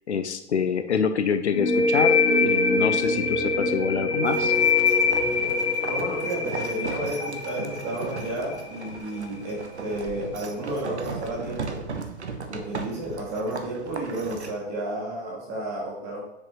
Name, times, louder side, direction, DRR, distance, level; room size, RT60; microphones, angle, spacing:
voice 1, 0.1-4.5, left 6 dB, 75° left, 9 dB, 0.7 m, -26 dB
sound 1, 1.5-9.0, left 4 dB, 15° left, 0.9 m, -24 dB
sound 2, 4.3-14.5, right 4 dB, 75° right, 1.0 m, -37 dB
voice 2, 5.8-11.8 12.5-16.2, right 1 dB, 35° right, -4 dB, 2.3 m, -32 dB
7.3 x 6.7 x 3.1 m, 0.88 s
figure-of-eight pair, 100°, 34 cm